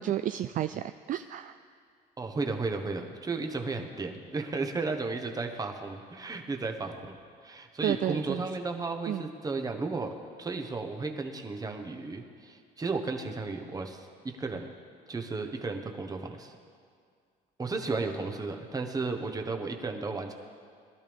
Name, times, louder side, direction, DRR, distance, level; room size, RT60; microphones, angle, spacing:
voice 1, 0.0-1.6 7.8-8.4 9.1-9.3, right 11 dB, 50° right, 10 dB, 0.4 m, -31 dB
voice 2, 2.2-7.2 7.4-10.1 10.4-14.7 15.1-16.6 17.6-20.3, right 3 dB, 20° right, 4 dB, 1.2 m, -34 dB
20.5 x 12.0 x 3.6 m, 2.1 s
cardioid pair, 110°, 17 cm